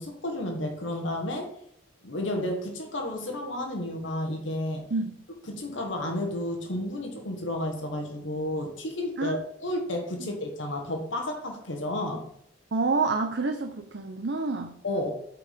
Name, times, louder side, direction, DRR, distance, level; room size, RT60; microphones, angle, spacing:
voice 1, 0.0-1.5 2.0-4.8 5.4-12.2 14.8-15.1, left 1 dB, 85° left, 3 dB, 1.4 m, -32 dB
voice 2, 12.7-14.7, right 3 dB, 65° right, 4 dB, 0.7 m, -28 dB
8.6 x 4.8 x 5.1 m, 0.70 s
head